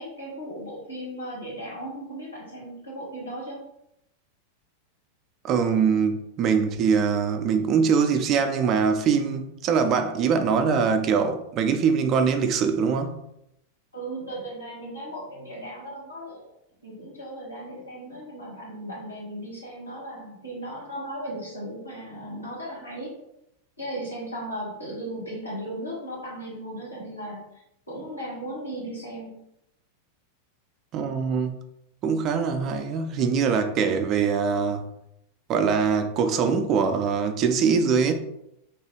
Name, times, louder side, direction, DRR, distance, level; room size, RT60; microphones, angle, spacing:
voice 1, 0.0-3.6 13.9-16.5 16.8-23.1 23.8-27.6 27.9-29.3, right 1 dB, 85° left, 1.3 m, -36 dB
voice 2, 5.4-13.2 30.9-31.6 32.0-34.9 35.5-38.1, right 6 dB, 35° right, 0.3 m, -23 dB
2.9 x 2.2 x 3.0 m
figure-of-eight pair, 90°, 0 cm